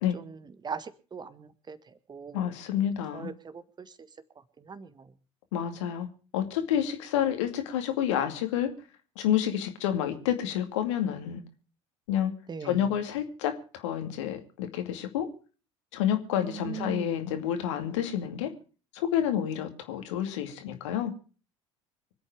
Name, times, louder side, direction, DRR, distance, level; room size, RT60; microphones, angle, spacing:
voice 1, 0.1-4.1 4.6-5.1 12.5-12.9 16.5-17.1, right 6 dB, 25° right, 13 dB, 1.6 m, -41 dB
voice 2, 2.3-3.3 5.5-6.1 6.3-8.7 9.2-11.4 12.1-12.3 12.6-15.3 15.9-18.5 18.9-21.1, left 10 dB, 65° left, 7 dB, 2.4 m, -29 dB
25.0 x 8.8 x 5.0 m, 0.37 s
figure-of-eight pair, 65°, 16 cm